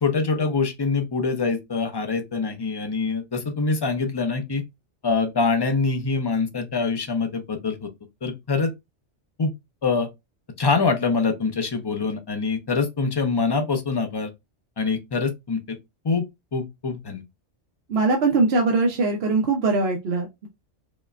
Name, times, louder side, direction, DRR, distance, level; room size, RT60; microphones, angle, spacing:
voice 1, 0.0-4.6 5.0-7.9 8.2-8.7 9.4-9.5 9.8-10.1 10.6-14.3 14.8-15.8 16.0-16.2 16.5-17.2, left 4 dB, 35° left, 0.4 m, -24 dB
voice 2, 17.9-20.5, right 3 dB, 65° right, 0.9 m, -21 dB
5.0 x 2.1 x 2.4 m
omnidirectional pair, 1.2 m